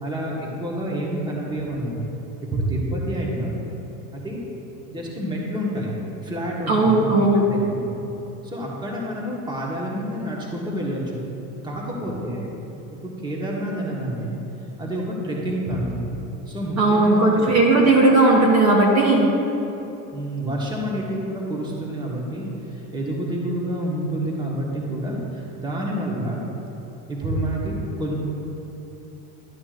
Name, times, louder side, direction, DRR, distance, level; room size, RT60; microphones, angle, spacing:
voice 1, 0.0-2.1 2.5-3.5 4.1-4.4 4.9-5.9 6.2-7.1 7.5-8.0 8.4-11.2 11.6-12.4 13.0-14.3 14.8-16.1 16.5-17.5 20.1-26.4 27.1-28.2, right 1 dB, 10° right, -4 dB, 1.4 m, -28 dB
voice 2, 6.7-7.4 16.8-19.3, right 2 dB, 35° right, -2 dB, 1.2 m, -16 dB
12.0 x 8.4 x 2.5 m, 3.0 s
supercardioid pair, 130°, 44 cm